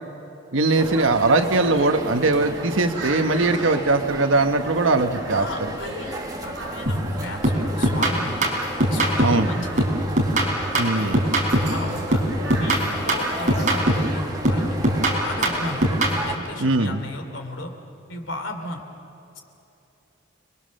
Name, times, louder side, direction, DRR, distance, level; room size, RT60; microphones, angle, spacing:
voice 1, 0.5-5.5 9.2-9.5 10.8-11.2 16.6-17.0, right 3 dB, 75° right, 7 dB, 1.3 m, -20 dB
sound 1, 0.7-16.4, right 2 dB, 20° right, 1.6 m, -35 dB
sound 2, 1.1-13.8, right 1 dB, 60° right, 5.7 m, -38 dB
voice 2, 5.3-8.5 8.9-9.8 11.0-11.2 11.6-12.2 12.5-15.8 16.1-17.7 18.1-18.8, left 1 dB, 70° left, 5 dB, 2.9 m, -34 dB
sound 3, 6.9-7.1 7.4-9.5 9.8-11.8 12.1-14.1 14.4-16.2, right 1 dB, 40° right, 4.2 m, -21 dB
30.0 x 21.5 x 6.6 m, 3.0 s
head